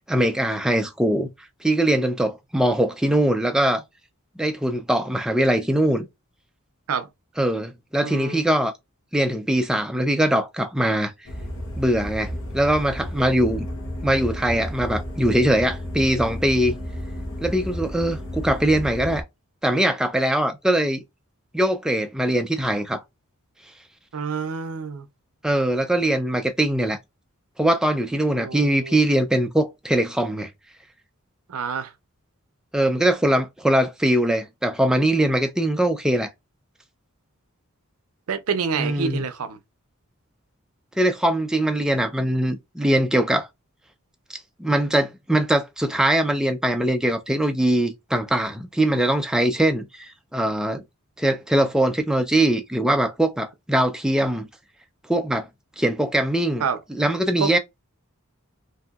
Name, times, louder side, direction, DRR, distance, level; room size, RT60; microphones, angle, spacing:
voice 1, 0.1-1.3 1.6-3.8 4.4-6.1 7.4-8.7 9.1-11.1 11.8-13.7 14.0-16.7 17.4-19.2 19.6-21.0 21.5-23.0 25.4-27.0 27.6-30.5 32.7-36.3 38.8-39.2 41.0-43.5 44.6-50.8 51.2-54.5 55.1-55.5 55.8-56.6 56.9-57.6, right 1 dB, 5° right, 0.3 m, -22 dB
voice 2, 8.0-8.4 24.1-25.1 28.4-29.0 31.5-31.9 38.3-39.6 56.6-56.8 57.4-57.6, right 6 dB, 75° right, 0.5 m, -27 dB
sound 1, 11.2-19.2, left 1 dB, 65° left, 0.7 m, -32 dB
2.7 x 2.6 x 2.3 m
head